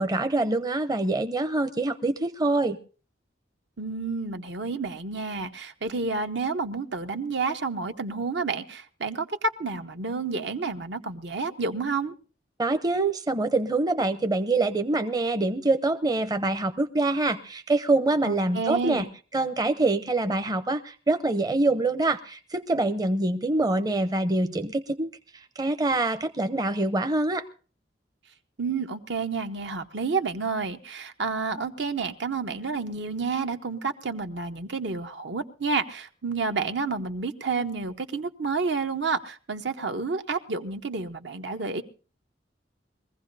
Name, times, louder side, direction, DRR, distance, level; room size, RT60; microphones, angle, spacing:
voice 1, 0.0-2.8 12.6-19.1 19.3-25.1 25.6-27.4, right 2 dB, 20° right, 9 dB, 0.6 m, -25 dB
voice 2, 3.8-12.1 18.2-19.1 28.6-41.8, right 4 dB, 70° right, 7 dB, 1.0 m, -30 dB
22.5 x 15.5 x 2.7 m, 0.38 s
head